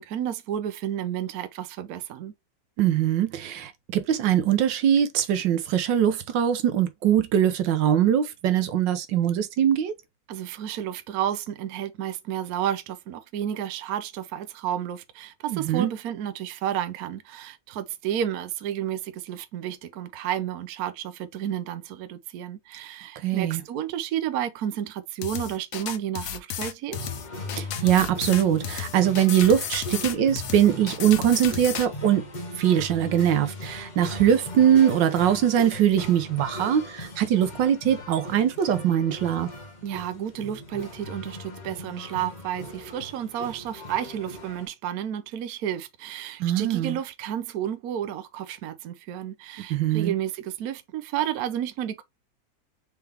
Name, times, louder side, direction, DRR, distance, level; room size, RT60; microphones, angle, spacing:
voice 1, 0.0-2.3 10.3-27.0 39.8-52.0, right 10 dB, 65° right, 1.0 m, -31 dB
voice 2, 2.8-9.9 15.5-15.9 23.2-23.6 27.5-32.2 32.6-39.5 46.4-47.0 49.7-50.1, right 10 dB, 85° right, 1.5 m, -22 dB
sound 1, 25.2-31.9, left 10 dB, 60° left, 0.9 m, -33 dB
sound 2, 26.9-44.7, left 1 dB, 30° left, 1.2 m, -39 dB
4.6 x 3.4 x 3.3 m
omnidirectional pair, 1.9 m